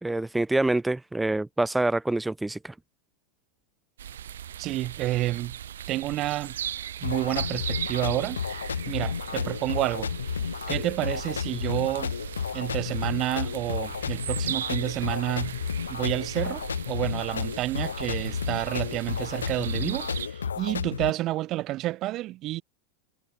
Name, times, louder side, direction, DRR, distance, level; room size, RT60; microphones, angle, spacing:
voice 1, 0.0-2.7, right 2 dB, 5° right, 0.9 m, -26 dB
sound 1, 4.0-20.3, right 10 dB, 65° right, 2.7 m, -38 dB
voice 2, 4.6-5.6 5.9-6.6 7.0-8.4 8.9-10.1 10.7-12.1 12.5-15.6 15.9-22.6, right 16 dB, 35° right, 3.3 m, -29 dB
sound 2, 7.0-21.1, left 7 dB, 70° left, 0.4 m, -32 dB
figure-of-eight pair, 90°, 0 cm